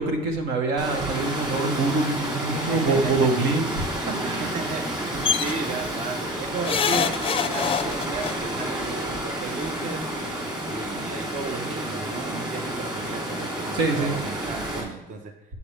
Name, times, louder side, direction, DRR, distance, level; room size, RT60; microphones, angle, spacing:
voice 1, 0.0-4.6 5.1-5.2 13.7-14.1, right 3 dB, 85° right, 4 dB, 1.3 m, -25 dB
Water, 0.8-14.8, right 1 dB, 25° right, 2.9 m, -30 dB
voice 2, 2.5-3.3 4.2-5.0 5.4-7.2 7.5-10.1 10.7-15.3, right 4 dB, 45° right, 5 dB, 0.8 m, -34 dB
sound 1, 5.2-5.5 6.7-8.3 9.5-9.6 9.9-10.0, left 7 dB, 35° left, 0.4 m, -24 dB
8.3 x 6.8 x 3.3 m, 0.98 s
cardioid pair, 110°, 17 cm